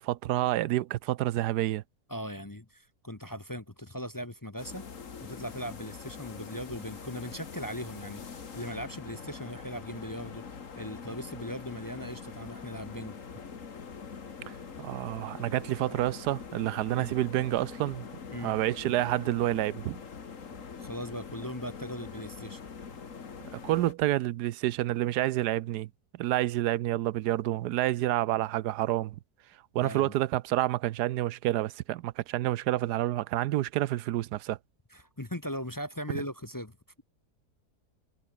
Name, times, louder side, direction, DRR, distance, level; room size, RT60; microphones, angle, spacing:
voice 1, 0.0-1.8 14.5-18.1 18.4-20.0 23.5-29.2 29.7-34.6, right 15 dB, 85° right, 1.2 m, -29 dB
voice 2, 2.1-4.8 5.2-13.2 17.0-17.1 18.3-18.5 20.8-22.6 29.8-30.1 34.9-36.8, equal, 15° left, 0.9 m, -39 dB
sound 1, 4.6-23.9, left 5 dB, 55° left, 2.1 m, -44 dB
omnidirectional pair, 1.7 m